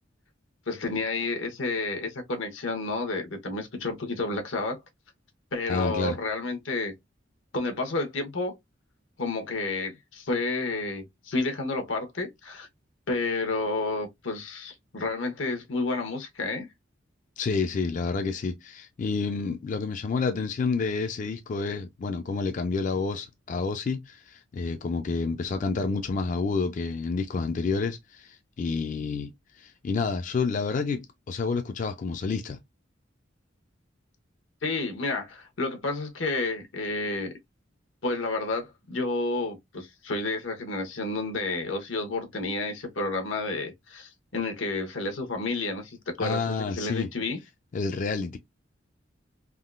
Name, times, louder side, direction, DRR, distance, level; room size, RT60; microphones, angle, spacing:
voice 1, 0.7-4.8 5.5-6.9 7.5-8.5 9.2-12.7 13.1-16.7 34.6-37.3 38.0-47.4, left 3 dB, 85° left, 1.0 m, -30 dB
voice 2, 5.7-6.2 17.4-29.3 29.6-32.6 46.2-47.1 47.7-48.4, left 4 dB, 40° left, 0.3 m, -29 dB
3.5 x 2.3 x 2.3 m
head